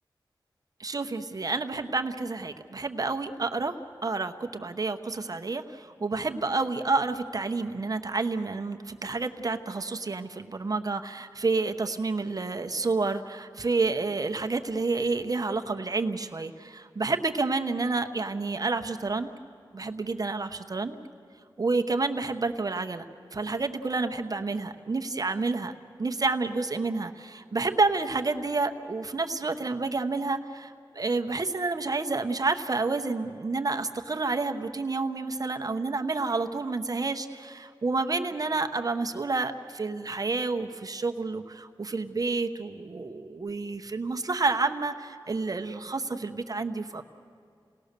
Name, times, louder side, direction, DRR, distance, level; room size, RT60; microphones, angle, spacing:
voice 1, 0.8-3.8 4.0-19.3 19.7-21.0 21.6-23.0 23.3-25.7 26.0-47.0, right 3 dB, 45° right, 6 dB, 0.9 m, -29 dB
28.5 x 19.0 x 6.7 m, 2.4 s
wide cardioid pair, 85°, 8 cm